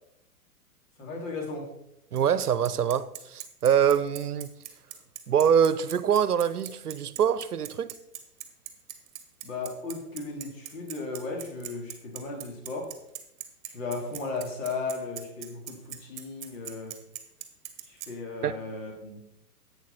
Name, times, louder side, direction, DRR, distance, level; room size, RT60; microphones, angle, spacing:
voice 1, 1.0-1.7 9.4-12.9 13.7-16.9 17.8-19.2, left 3 dB, 55° left, 3.3 m, -36 dB
voice 2, 2.1-4.5 5.3-7.9 18.4-18.6, right 8 dB, 75° right, 0.8 m, -24 dB
Bicycle, 2.2-18.1, right 12 dB, 30° right, 1.5 m, -40 dB
11.5 x 8.7 x 4.3 m
figure-of-eight pair, 115°, 46 cm